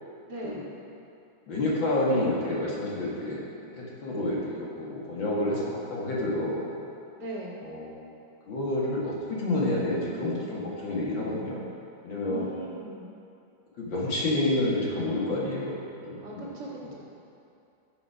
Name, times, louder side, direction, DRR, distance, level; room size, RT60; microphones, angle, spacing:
voice 1, 0.3-0.6 7.2-7.6 12.2-13.1 16.2-16.9, right 1 dB, 60° right, -5 dB, 2.4 m, -39 dB
voice 2, 1.5-3.4 3.7-5.6 5.9-6.6 7.6-8.1 8.5-11.6 12.0-12.5 13.8-16.5 16.8-16.9, left 1 dB, 85° left, -5 dB, 2.7 m, -29 dB
15.5 x 5.6 x 5.0 m, 2.6 s
omnidirectional pair, 2.1 m